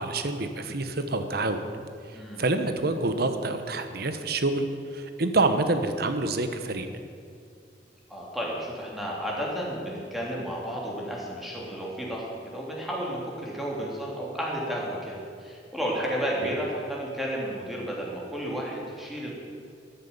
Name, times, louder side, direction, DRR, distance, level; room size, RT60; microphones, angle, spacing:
voice 1, 0.0-1.6 2.1-4.6 4.9-6.9 16.4-16.5, right 2 dB, 60° right, 8 dB, 1.1 m, -27 dB
voice 2, 2.1-2.4 8.1-19.3, equal, ahead, -4 dB, 3.0 m, -32 dB
13.5 x 10.0 x 7.2 m, 2.2 s
head